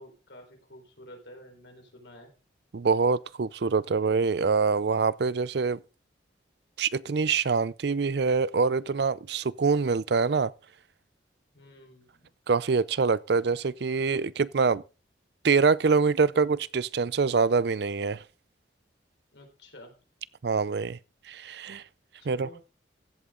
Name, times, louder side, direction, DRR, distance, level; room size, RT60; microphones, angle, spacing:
voice 1, 0.0-2.3 11.5-12.3 19.3-19.9 22.2-22.6, equal, 70° left, 4.1 m, -50 dB
voice 2, 2.7-5.8 6.8-10.5 12.5-14.8 15.4-18.2 20.4-21.0 21.3-21.8 22.3-22.5, right 4 dB, 60° right, 0.5 m, -25 dB
15.0 x 8.4 x 3.7 m
head